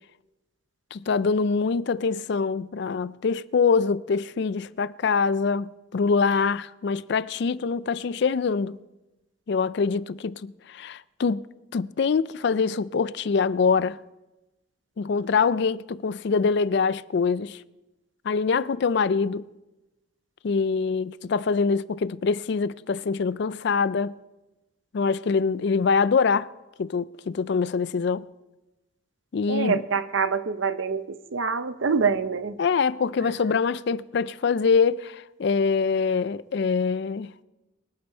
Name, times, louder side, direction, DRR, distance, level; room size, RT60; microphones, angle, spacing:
voice 1, 0.9-8.8 9.5-11.4 11.7-14.0 15.0-17.6 18.2-19.5 20.4-24.1 24.9-26.5 26.8-28.3 29.3-29.8 32.6-37.3, left 5 dB, 55° left, 0.4 m, -24 dB
voice 2, 29.5-32.6 33.2-33.3, right 5 dB, 70° right, 0.7 m, -26 dB
23.5 x 8.7 x 4.4 m
head